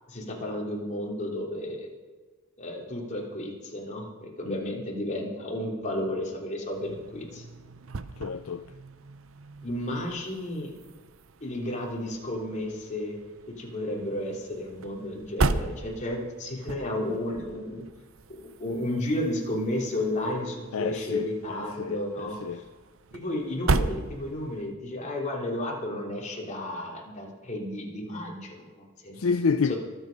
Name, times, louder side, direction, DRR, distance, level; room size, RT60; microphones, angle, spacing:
voice 1, 0.1-1.9 2.6-7.4 9.6-10.7 11.4-13.2 13.5-17.8 18.4-22.4 23.1-29.2 29.7-29.8, left 1 dB, 35° left, 3.2 m, -32 dB
voice 2, 4.4-4.7 8.2-8.6 20.7-21.3 21.8-22.6 29.2-29.7, left 5 dB, 65° left, 0.5 m, -29 dB
sound 1, 6.6-24.7, right 3 dB, 65° right, 0.7 m, -36 dB
24.5 x 8.2 x 5.3 m
head